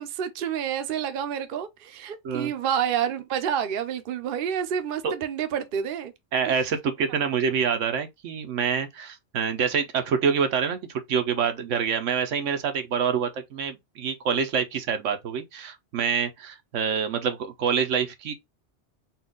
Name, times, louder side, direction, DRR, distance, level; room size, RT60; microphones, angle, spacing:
voice 1, 0.0-6.1, right 8 dB, 55° right, 0.8 m, -28 dB
voice 2, 6.3-10.8 11.1-18.3, right 6 dB, 80° right, 1.1 m, -26 dB
4.3 x 2.4 x 3.8 m
omnidirectional pair, 1.3 m